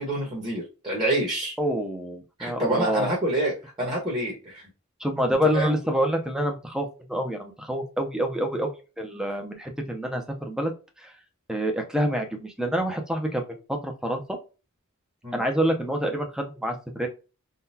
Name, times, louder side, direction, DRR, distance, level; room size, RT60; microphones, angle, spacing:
voice 1, 0.0-1.6 2.4-4.7 5.5-5.7 15.2-15.4, right 1 dB, 20° right, -5 dB, 1.1 m, -27 dB
voice 2, 1.6-3.1 5.0-10.7 11.0-11.1 11.5-14.2 15.3-17.1, equal, 5° right, 4 dB, 0.6 m, -27 dB
3.8 x 2.2 x 2.7 m, 0.31 s
head